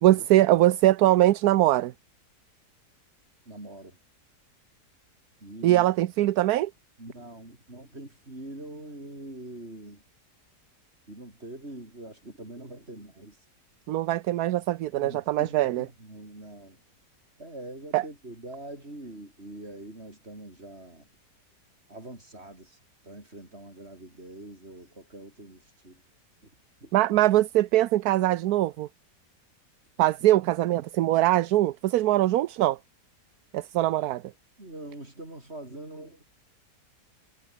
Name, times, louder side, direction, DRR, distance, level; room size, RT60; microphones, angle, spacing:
voice 1, 0.0-1.9 5.6-6.7 13.9-15.8 17.9-18.0 26.9-28.9 30.0-32.8 33.5-34.2, right 14 dB, 70° right, 1.1 m, -22 dB
voice 2, 3.5-4.0 5.4-5.9 7.0-10.0 11.1-13.4 15.0-16.8 17.4-21.1 21.9-22.8 23.0-26.0 26.4-26.5 26.8-27.0 34.6-36.2, right 1 dB, 35° right, 7.2 m, -43 dB
omnidirectional pair, 1.8 m